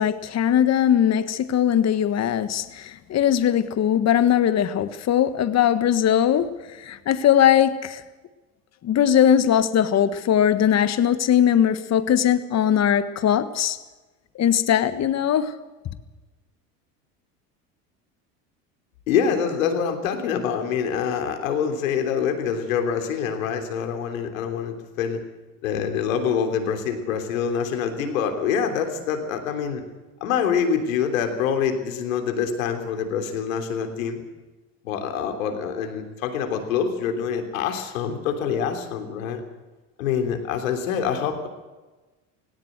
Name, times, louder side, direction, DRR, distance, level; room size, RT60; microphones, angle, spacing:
voice 1, 0.0-6.5 6.8-8.0 8.8-13.8 14.4-15.5, left 9 dB, 40° left, 1.5 m, -20 dB
voice 2, 19.1-25.2 25.6-29.8 30.2-34.3 34.8-39.4 40.0-41.5, left 7 dB, 80° left, 3.5 m, -25 dB
18.5 x 17.5 x 8.1 m
hypercardioid pair, 80°, 40 cm